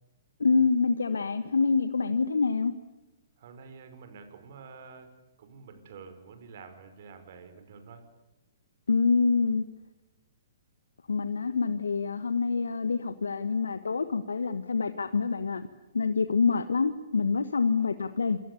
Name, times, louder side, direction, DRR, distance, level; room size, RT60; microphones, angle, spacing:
voice 1, 0.4-2.7 8.9-9.6 11.1-15.7 15.9-18.4, left 4 dB, 75° left, 10 dB, 1.4 m, -26 dB
voice 2, 3.4-8.1 17.6-18.4, right 5 dB, 55° right, 10 dB, 5.4 m, -49 dB
28.0 x 24.5 x 7.1 m, 1.0 s
figure-of-eight pair, 120°, 0 cm